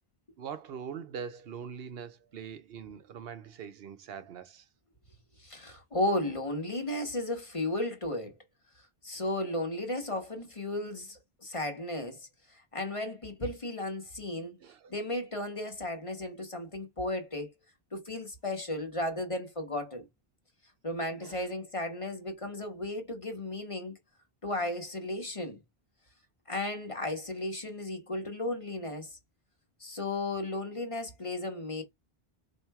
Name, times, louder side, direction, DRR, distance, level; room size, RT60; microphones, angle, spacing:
voice 1, 0.4-4.6 14.6-14.9 21.2-21.5, right 7 dB, 75° right, 0.9 m, -42 dB
voice 2, 5.4-8.3 9.0-14.5 14.9-17.5 17.9-20.0 20.8-24.0 24.4-25.6 26.5-29.2 29.8-31.8, left 1 dB, 35° left, 1.1 m, -34 dB
4.2 x 2.8 x 4.6 m
omnidirectional pair, 1.0 m